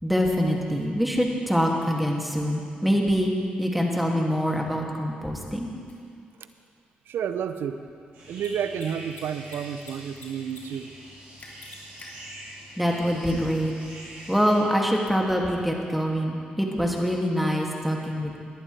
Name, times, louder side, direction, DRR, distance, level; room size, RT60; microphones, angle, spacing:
voice 1, 0.0-3.3 3.6-5.7 12.8-13.7 14.3-18.4, equal, ahead, -1 dB, 2.4 m, -24 dB
Mechanisms, 5.9-6.0 8.3-8.5 8.7-8.9 9.1-9.9 10.2-10.6 10.9-11.0 11.4-12.1, left 3 dB, 45° left, 3.1 m, -45 dB
voice 2, 7.1-7.8 8.3-10.9, right 8 dB, 75° right, 10 dB, 0.6 m, -31 dB
sound 1, 8.1-14.6, right 1 dB, 90° right, 3.9 m, -44 dB
18.5 x 11.0 x 3.4 m, 2.3 s
supercardioid pair, 50°, 4 cm